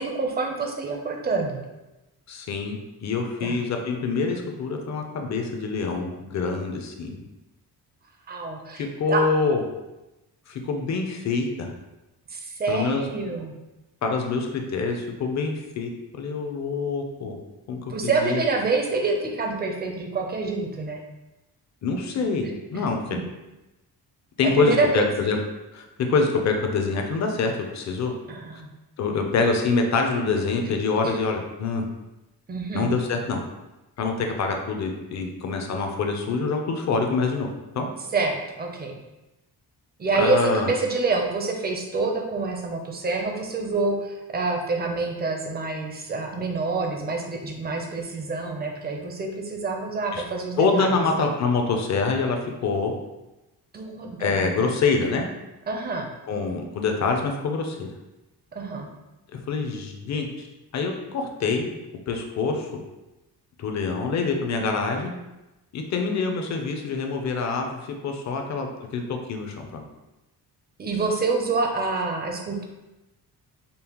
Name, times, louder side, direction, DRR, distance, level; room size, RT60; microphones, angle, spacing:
voice 1, 0.0-1.6 3.4-3.6 8.3-9.2 12.3-13.5 17.9-21.0 22.4-23.2 24.5-25.0 28.3-28.7 31.0-31.2 32.5-32.9 38.1-39.0 40.0-51.0 53.7-54.6 55.7-56.1 58.6-58.9 64.5-64.7 70.8-72.6, right 3 dB, 25° right, 2 dB, 0.4 m, -27 dB
voice 2, 2.3-7.2 8.7-9.6 10.5-11.7 12.7-13.0 14.0-17.4 17.7-18.4 21.8-22.5 22.7-23.2 24.4-25.4 25.7-25.8 26.1-28.1 29.0-31.9 32.7-33.4 34.0-37.5 37.7-37.9 40.1-40.7 50.1-50.2 50.6-52.9 54.2-55.3 56.3-57.9 59.3-60.5 60.7-61.7 62.1-62.8 63.6-65.1 65.7-69.8, left 4 dB, 45° left, 3 dB, 0.5 m, -25 dB
5.2 x 2.1 x 2.9 m, 1.0 s
wide cardioid pair, 175°, 39 cm